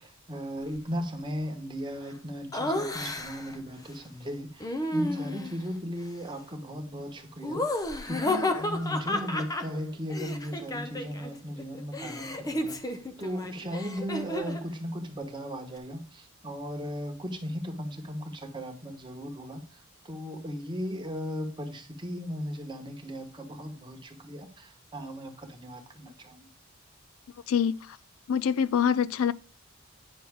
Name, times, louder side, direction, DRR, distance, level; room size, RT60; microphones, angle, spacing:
voice 1, 0.0-19.6 20.0-26.5, equal, 20° right, 1.2 m, -37 dB
Laughter, 2.5-3.6 4.6-5.6 7.4-11.3 11.6-14.7, left 1 dB, 15° left, 0.6 m, -32 dB
voice 2, 27.5-28.0 28.3-29.3, left 7 dB, 75° left, 0.4 m, -25 dB
9.3 x 6.0 x 3.6 m
head